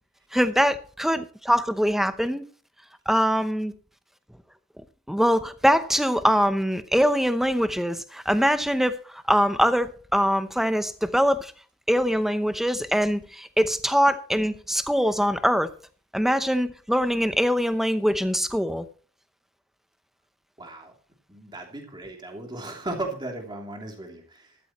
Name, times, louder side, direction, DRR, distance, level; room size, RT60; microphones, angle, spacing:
voice 1, 0.3-2.5 3.1-3.7 5.1-11.5 11.9-15.7 16.1-18.9, equal, ahead, 0.7 m, -23 dB
voice 2, 20.6-20.9 21.3-24.6, right 2 dB, 20° right, 3.1 m, -36 dB
14.0 x 13.0 x 3.1 m
head